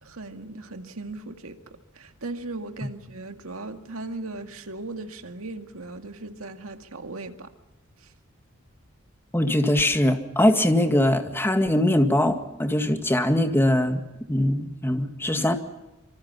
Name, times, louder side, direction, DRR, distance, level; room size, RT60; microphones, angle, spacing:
voice 1, 0.0-1.6 2.0-7.5, right 2 dB, 80° right, 6 dB, 2.1 m, -37 dB
voice 2, 9.3-14.0 14.3-15.6, left 1 dB, 10° left, 6 dB, 1.9 m, -22 dB
26.0 x 25.0 x 5.7 m, 1.0 s
head